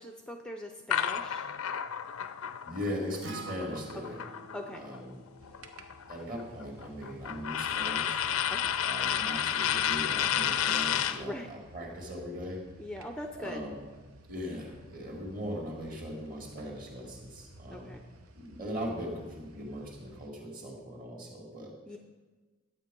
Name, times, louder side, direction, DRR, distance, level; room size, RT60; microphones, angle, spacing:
voice 1, 0.0-1.5 4.5-4.8 8.5-8.8 11.2-11.5 12.8-13.6 17.7-18.0 21.9-22.0, left 1 dB, 5° left, 4 dB, 0.5 m, -41 dB
sound 1, 0.9-5.0 5.3-11.2, left 9 dB, 80° left, 0.5 m, -31 dB
voice 2, 2.7-4.2 4.8-5.2 6.1-8.3 8.8-12.6 13.4-13.8 14.3-18.0 18.3-21.7, equal, 40° right, 0 dB, 2.3 m, -39 dB
Acoustic guitar, 3.2-7.5, right 2 dB, 60° right, 0.8 m, -48 dB
sound 2, 5.4-20.3, right 1 dB, 85° right, 1.0 m, -54 dB
11.5 x 8.3 x 5.3 m, 1.3 s
head